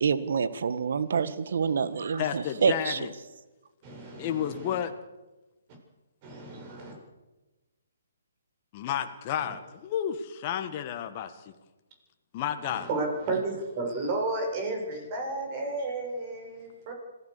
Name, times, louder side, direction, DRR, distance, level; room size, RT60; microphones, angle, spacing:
voice 1, 0.0-3.0, right 6 dB, 60° right, 13 dB, 1.7 m, -27 dB
voice 2, 2.2-3.1 4.2-4.9 8.7-11.5 12.3-12.9, left 10 dB, 35° left, 6 dB, 1.8 m, -31 dB
voice 3, 3.8-4.8 6.2-7.0 9.4-9.5 12.7-16.9, right 2 dB, 35° right, 3 dB, 7.4 m, -33 dB
26.5 x 16.5 x 6.9 m, 1.1 s
figure-of-eight pair, 140°, 0 cm